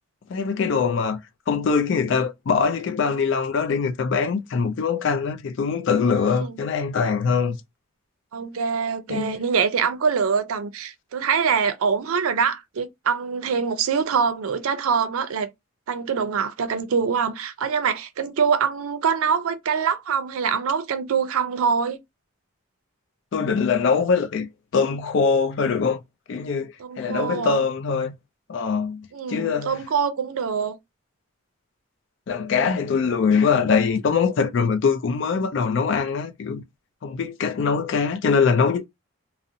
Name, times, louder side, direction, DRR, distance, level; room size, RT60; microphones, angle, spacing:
voice 1, 0.3-1.2 1.5-7.6 9.1-9.4 23.3-26.0 26.3-28.2 28.5-29.8 32.3-36.6 37.0-38.9, left 5 dB, 55° left, 0.3 m, -23 dB
voice 2, 8.3-15.5 15.9-22.0 26.8-27.6 29.1-30.8, right 6 dB, 80° right, 0.4 m, -24 dB
2.5 x 2.0 x 2.7 m
head